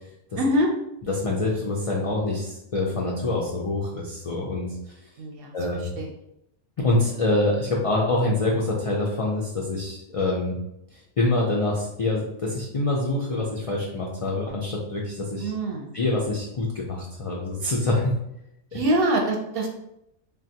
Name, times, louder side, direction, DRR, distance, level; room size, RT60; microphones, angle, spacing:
voice 1, 0.4-0.7 5.2-5.5 6.0-6.1 15.4-15.9 18.7-19.7, right 1 dB, 65° right, 2 dB, 0.7 m, -24 dB
voice 2, 1.1-4.8 5.5-5.9 6.8-10.6 11.2-15.5 15.9-18.1 18.7-18.8, left 2 dB, 60° left, -3 dB, 0.3 m, -25 dB
3.5 x 2.3 x 2.7 m, 0.81 s
omnidirectional pair, 1.2 m